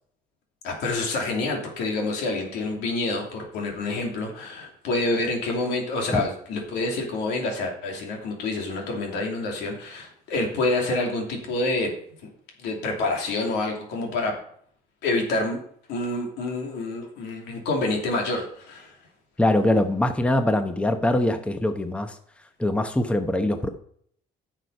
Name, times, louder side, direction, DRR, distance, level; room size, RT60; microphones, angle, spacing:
voice 1, 0.6-11.9 12.6-14.3 15.0-15.6 15.9-18.9, left 2 dB, 85° left, 1 dB, 2.8 m, -27 dB
voice 2, 19.4-22.2 22.6-23.7, left 1 dB, 5° left, 7 dB, 0.9 m, -23 dB
9.9 x 6.5 x 5.4 m, 0.63 s
cardioid pair, 110°, 17 cm